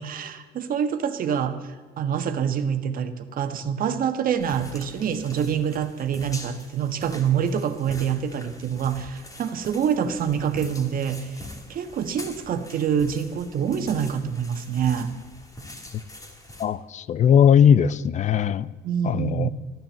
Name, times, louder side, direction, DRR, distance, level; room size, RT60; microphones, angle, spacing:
voice 1, 0.0-11.4 11.7-15.1 18.8-19.5, right 8 dB, 55° right, 1.4 m, -26 dB
sound 1, 4.4-16.7, left 1 dB, 20° left, 2.8 m, -43 dB
voice 2, 16.6-18.7 19.0-19.5, left 8 dB, 45° left, 0.5 m, -19 dB
14.0 x 10.5 x 7.5 m
cardioid pair, 110°, 17 cm